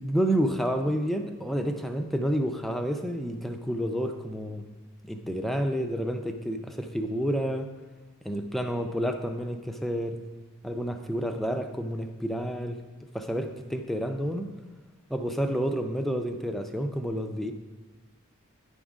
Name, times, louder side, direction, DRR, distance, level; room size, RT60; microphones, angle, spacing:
voice 1, 0.0-4.7 5.1-7.7 8.2-10.2 10.6-12.8 13.1-14.5 15.1-17.5, equal, ahead, 5 dB, 0.4 m, -29 dB
10.0 x 3.6 x 6.2 m, 1.4 s
head